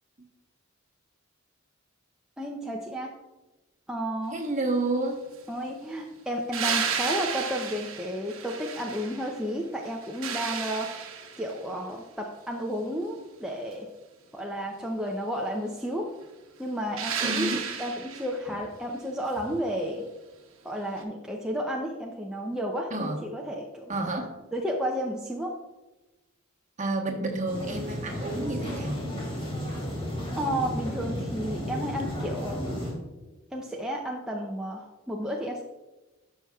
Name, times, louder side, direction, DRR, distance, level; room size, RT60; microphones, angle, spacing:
voice 1, 2.4-3.1 3.9-4.4 5.5-10.9 11.4-13.9 14.3-16.1 16.6-17.5 17.8-20.0 20.6-23.9 24.5-25.6 30.3-32.6 33.5-35.6, equal, 5° right, -1 dB, 0.5 m, -32 dB
voice 2, 4.3-5.2 17.2-17.7 18.5-18.6 22.9-23.2 23.9-24.3 26.8-29.1, right 2 dB, 35° right, 2 dB, 1.1 m, -30 dB
sound 1, 6.5-9.4 9.8-11.6 17.0-18.4 21.0-21.1, right 6 dB, 70° right, 0.9 m, -32 dB
sound 2, 27.5-32.9, equal, 25° left, 2.6 m, -33 dB
12.0 x 5.6 x 2.3 m, 1.1 s
head